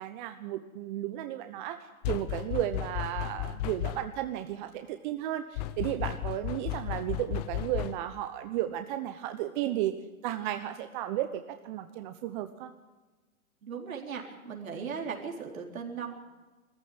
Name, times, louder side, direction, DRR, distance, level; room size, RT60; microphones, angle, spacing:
voice 1, 0.0-1.8 2.1-9.9 10.2-12.7, right 12 dB, 35° right, 9 dB, 1.0 m, -34 dB
sound 1, 2.0-4.3 5.6-8.2, left 13 dB, 30° left, 0.7 m, -34 dB
voice 2, 13.6-16.1, right 6 dB, 70° right, 1 dB, 4.1 m, -37 dB
21.0 x 14.5 x 9.3 m, 1.2 s
hypercardioid pair, 120°, 42 cm